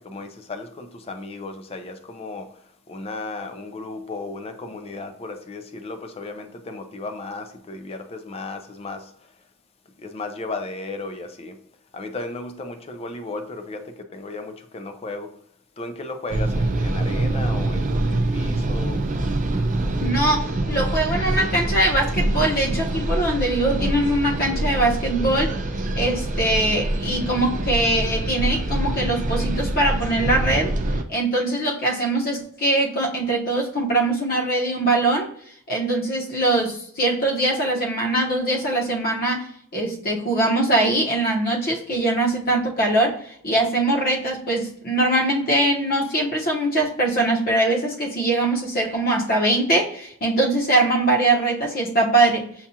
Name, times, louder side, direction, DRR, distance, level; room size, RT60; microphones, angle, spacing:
voice 1, 0.1-2.5 2.9-9.0 10.0-11.5 11.9-13.8 14.1-15.3 15.8-19.0, left 2 dB, 30° left, 0.5 m, -34 dB
sound 1, 16.3-31.0, right 1 dB, 40° right, 0.4 m, -25 dB
voice 2, 20.0-25.5 26.0-30.7 31.1-35.3 35.7-39.5 39.7-43.2 43.4-52.5, right 2 dB, 45° left, 1.0 m, -22 dB
7.0 x 2.4 x 2.8 m
head